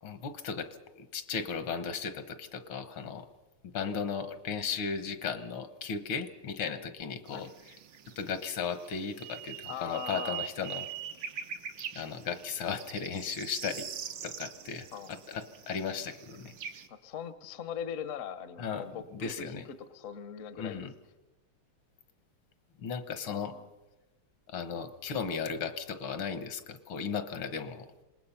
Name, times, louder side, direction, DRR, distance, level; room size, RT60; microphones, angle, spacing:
voice 1, 0.0-0.7 1.0-3.3 3.6-7.5 8.2-10.9 12.0-13.9 14.2-16.5 18.6-18.9 19.1-19.6 20.6-20.9 22.8-23.5 24.5-27.9, left 6 dB, 75° left, 11 dB, 2.1 m, -36 dB
sound 1, 7.3-16.9, right 9 dB, 80° right, 2.0 m, -43 dB
voice 2, 9.7-10.4 14.9-15.1 16.9-19.6 19.9-20.9 23.2-23.7 24.7-24.9, left 8 dB, 50° left, 13 dB, 1.0 m, -41 dB
26.5 x 20.5 x 5.8 m, 1.1 s
omnidirectional pair, 2.3 m